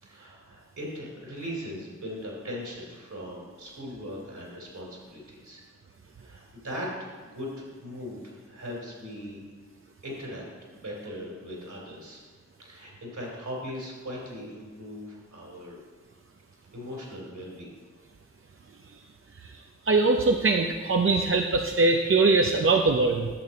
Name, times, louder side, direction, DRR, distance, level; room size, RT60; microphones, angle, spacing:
voice 1, 0.0-5.6 6.2-6.9 7.2-9.4 10.0-12.2 12.6-15.9 16.7-17.8, equal, 65° right, -2 dB, 3.2 m, -39 dB
voice 2, 19.8-23.3, right 3 dB, 45° right, 3 dB, 0.6 m, -22 dB
11.0 x 6.6 x 4.2 m, 1.5 s
cardioid pair, 40°, 31 cm